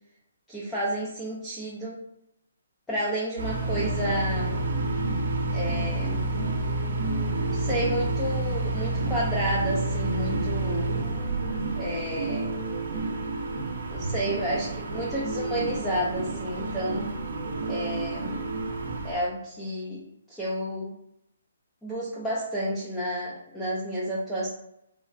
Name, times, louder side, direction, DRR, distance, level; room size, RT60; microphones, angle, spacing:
voice 1, 0.5-2.0 2.9-4.6 5.5-6.3 7.5-10.9 11.8-12.5 13.9-17.1 17.7-18.3 19.0-20.0 20.3-20.9 21.8-24.5, equal, 5° left, -8 dB, 0.4 m, -31 dB
sound 1, 3.4-19.1, right 2 dB, 70° right, 0.7 m, -29 dB
3.6 x 2.1 x 2.4 m, 0.82 s
hypercardioid pair, 165°, 0 cm